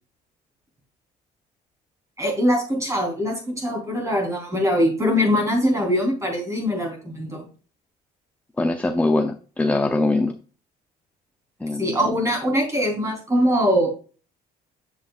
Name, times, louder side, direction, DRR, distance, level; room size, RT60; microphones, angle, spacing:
voice 1, 2.2-7.5 11.8-13.9, equal, 15° right, 1 dB, 3.6 m, -22 dB
voice 2, 8.6-10.3 11.6-11.9, left 2 dB, 10° left, 6 dB, 0.6 m, -22 dB
7.9 x 7.1 x 2.4 m, 0.38 s
cardioid pair, 110°, 17 cm